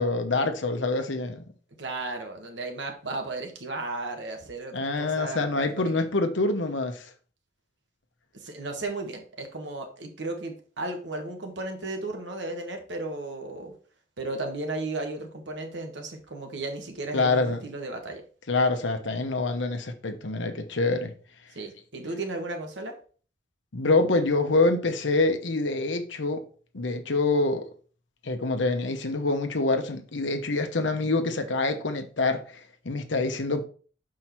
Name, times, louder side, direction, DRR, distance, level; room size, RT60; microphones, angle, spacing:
voice 1, 0.0-1.4 4.7-7.1 17.1-17.6 18.5-21.1 23.7-26.4 26.7-27.7 28.2-33.6, left 3 dB, 75° left, 0.9 m, -26 dB
voice 2, 1.8-6.0 8.3-13.7 14.2-18.2 21.5-22.9, right 2 dB, 70° right, 1.5 m, -35 dB
6.2 x 4.7 x 4.4 m
head